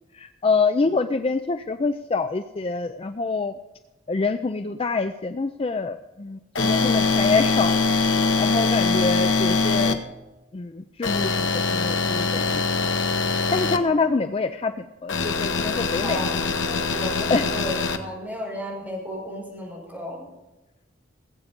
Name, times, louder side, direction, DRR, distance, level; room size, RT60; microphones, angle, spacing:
voice 1, 0.1-3.5 4.1-7.8 8.0-10.0 10.5-12.6 13.5-16.2 17.3-17.4, left 4 dB, 30° left, 9 dB, 0.4 m, -26 dB
sound 1, 6.5-9.9 11.0-13.8 15.1-18.0, left 4 dB, 70° left, 1.2 m, -23 dB
voice 2, 16.0-20.3, equal, 10° right, -3 dB, 5.5 m, -34 dB
18.5 x 8.4 x 5.2 m, 1.0 s
head